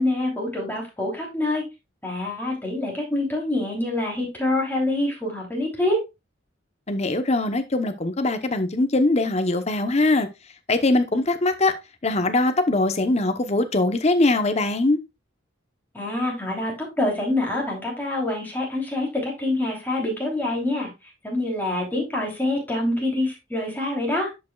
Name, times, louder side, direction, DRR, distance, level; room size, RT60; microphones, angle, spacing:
voice 1, 0.0-1.6 2.0-6.0 15.9-20.9 21.2-24.3, left 1 dB, 10° left, 3.1 m, -26 dB
voice 2, 6.9-10.3 10.7-11.7 12.0-15.0, left 2 dB, 35° left, 0.8 m, -21 dB
11.0 x 5.4 x 2.3 m
head